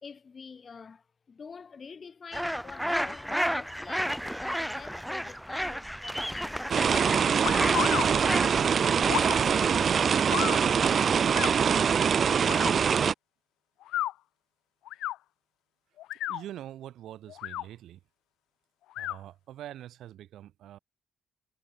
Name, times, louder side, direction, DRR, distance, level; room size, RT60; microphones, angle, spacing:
voice 1, 0.0-10.8, left 5 dB, 40° left, 4.1 m, -47 dB
Squabbling Shell Ducks, 2.3-10.4, equal, ahead, 2.6 m, -33 dB
sound 1, 6.7-13.1, right 7 dB, 50° right, 1.0 m, -24 dB
sound 2, 7.4-8.1 9.0-9.4 10.3-10.6 11.3-11.5 12.4-12.7 13.8-14.1 14.9-15.2 16.0-16.4 17.3-17.6 18.9-19.2, left 14 dB, 85° left, 0.3 m, -32 dB
voice 2, 16.3-18.0 19.0-20.8, right 12 dB, 80° right, 6.3 m, -44 dB
cardioid pair, 90°, 0 cm